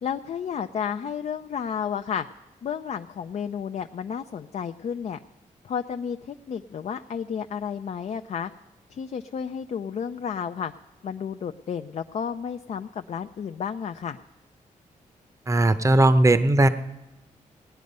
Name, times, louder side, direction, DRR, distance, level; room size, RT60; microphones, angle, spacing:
voice 1, 0.0-2.3 2.6-5.2 5.6-8.5 8.9-10.7 11.0-14.2, left 7 dB, 55° left, 7 dB, 0.5 m, -32 dB
voice 2, 15.5-16.7, right 2 dB, 20° right, 11 dB, 0.7 m, -18 dB
18.0 x 9.3 x 5.4 m, 1.0 s
cardioid pair, 85°, 14 cm